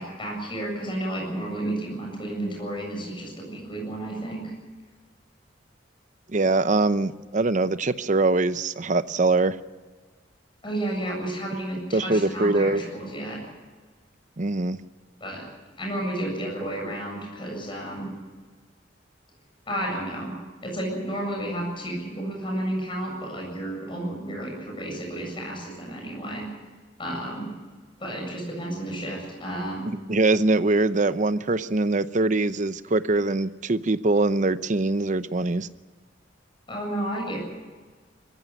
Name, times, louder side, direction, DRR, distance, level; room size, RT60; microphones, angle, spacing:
voice 1, 0.0-4.5 10.6-13.5 15.2-15.5 15.8-18.1 19.7-20.3 20.6-26.5 27.0-27.5 28.0-29.9 36.7-37.4, right 1 dB, 30° left, 0 dB, 7.7 m, -32 dB
voice 2, 6.3-9.6 11.9-12.8 14.4-14.8 30.1-35.7, right 2 dB, 40° right, 13 dB, 0.8 m, -23 dB
22.0 x 15.0 x 9.4 m, 1.4 s
head